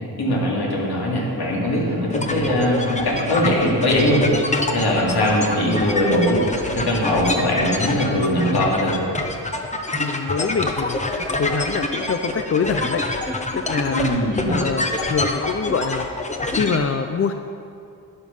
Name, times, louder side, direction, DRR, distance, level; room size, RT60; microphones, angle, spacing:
voice 1, 0.0-4.3 4.7-6.4 6.7-8.9 13.9-14.5, left 1 dB, 65° left, -4 dB, 3.0 m, -21 dB
sound 1, 1.1-7.7, equal, 65° right, 1.6 m, -35 dB
sound 2, 2.1-16.8, left 2 dB, 15° left, 0.8 m, -26 dB
voice 2, 9.9-14.1 14.5-16.1 16.5-17.3, left 5 dB, 35° left, 7 dB, 0.4 m, -25 dB
12.0 x 11.0 x 5.5 m, 2.5 s
wide cardioid pair, 160°, 41 cm